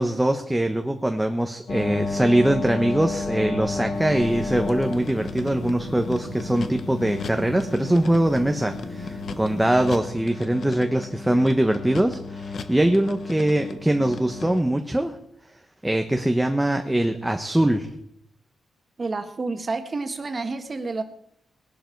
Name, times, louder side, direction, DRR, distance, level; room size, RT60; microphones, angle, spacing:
voice 1, 0.0-15.2 15.8-17.9, right 1 dB, 5° right, 5 dB, 1.1 m, -22 dB
sound 1, 1.7-14.6, left 4 dB, 60° left, 1.3 m, -33 dB
sound 2, 1.7-7.1, right 6 dB, 85° right, 1.5 m, -44 dB
sound 3, 3.9-9.9, left 2 dB, 80° left, 6.3 m, -38 dB
voice 2, 19.0-21.0, right 3 dB, 35° right, 7 dB, 1.8 m, -29 dB
19.5 x 11.5 x 4.7 m, 0.72 s
cardioid pair, 115°, 0 cm